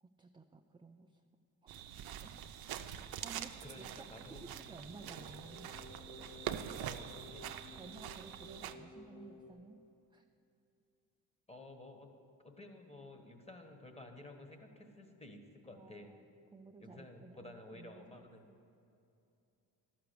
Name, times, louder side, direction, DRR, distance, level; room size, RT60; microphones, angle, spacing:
voice 1, 0.0-1.2 1.6-1.7 2.2-2.6 3.2-3.9 4.1-5.7 7.4-7.5 7.8-9.8 10.1-10.3 14.8-14.9 15.7-16.3 16.5-18.6, right 3 dB, 10° right, 4 dB, 0.4 m, -55 dB
sound 1, 1.7-8.7, right 10 dB, 65° right, 0.6 m, -45 dB
voice 2, 3.6-4.4 6.8-7.5 11.5-12.1 12.4-16.1 16.8-18.4, left 2 dB, 15° left, 4 dB, 1.4 m, -53 dB
sound 2, 4.1-9.5, left 2 dB, 80° left, 2.1 m, -55 dB
12.5 x 5.9 x 6.7 m, 2.7 s
supercardioid pair, 65°, 41 cm